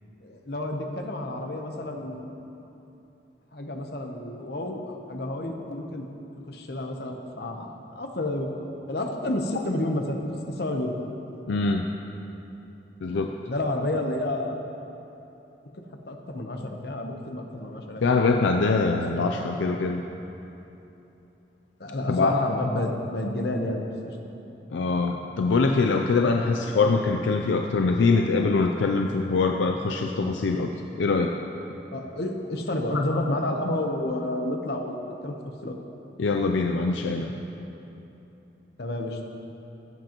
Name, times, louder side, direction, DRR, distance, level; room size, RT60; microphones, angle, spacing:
voice 1, 0.2-2.3 3.5-6.1 6.5-8.5 8.9-10.2 10.6-11.0 13.4-14.6 15.8-18.1 19.4-19.7 21.8-23.9 31.9-35.7 38.8-39.2, left 1 dB, 60° left, 3 dB, 0.9 m, -30 dB
voice 2, 11.5-11.9 13.0-13.3 18.0-20.0 22.1-22.4 24.7-30.7 31.0-31.3 36.2-37.3, left 3 dB, 85° left, 3 dB, 0.4 m, -23 dB
16.0 x 7.6 x 3.0 m, 3.0 s
head